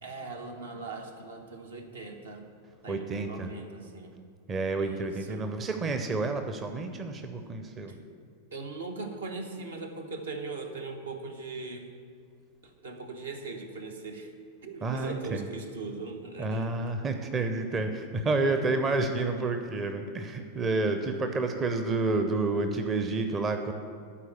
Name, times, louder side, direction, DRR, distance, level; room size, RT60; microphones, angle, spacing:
voice 1, 0.0-2.5 2.8-4.2 4.8-5.5 7.9-8.0 8.5-11.9 12.6-14.3 14.6-16.9, right 3 dB, 70° right, 4 dB, 1.1 m, -40 dB
voice 2, 2.9-3.5 4.5-7.9 14.8-15.5 16.4-23.7, right 3 dB, 25° right, 6 dB, 0.7 m, -29 dB
12.5 x 4.7 x 8.0 m, 2.2 s
figure-of-eight pair, 90°, 0 cm